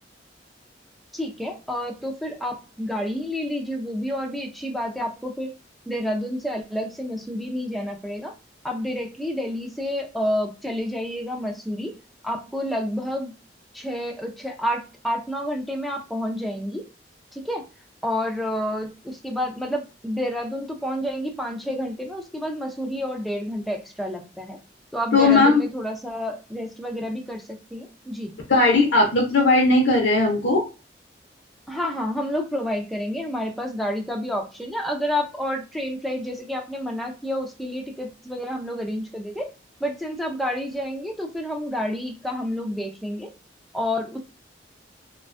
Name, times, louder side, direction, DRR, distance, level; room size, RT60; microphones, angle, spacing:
voice 1, 1.1-5.5 5.9-8.3 8.6-12.0 12.2-13.3 13.7-16.8 17.3-17.6 18.0-24.6 24.9-28.3 31.7-39.5 39.8-43.3 43.7-44.2, equal, ahead, 2 dB, 0.3 m, -29 dB
voice 2, 25.1-25.6 28.5-30.6, left 3 dB, 80° left, 0 dB, 0.6 m, -17 dB
2.4 x 2.2 x 2.4 m, 0.31 s
head